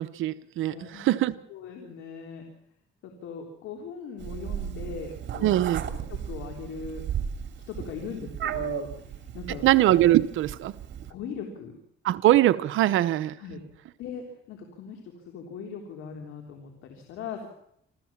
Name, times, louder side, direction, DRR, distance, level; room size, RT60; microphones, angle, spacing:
voice 1, 0.0-1.3 5.4-5.8 9.6-10.7 12.0-13.3, right 14 dB, 85° right, 13 dB, 0.9 m, -22 dB
voice 2, 0.7-1.2 1.5-2.4 3.0-5.6 5.9-7.0 7.7-9.7 11.1-11.7 13.4-13.6 14.0-17.5, left 6 dB, 90° left, 3 dB, 3.6 m, -39 dB
Meow, 4.2-11.1, right 9 dB, 65° right, 2.7 m, -35 dB
27.0 x 15.0 x 7.3 m, 0.72 s
cardioid pair, 90°, 20 cm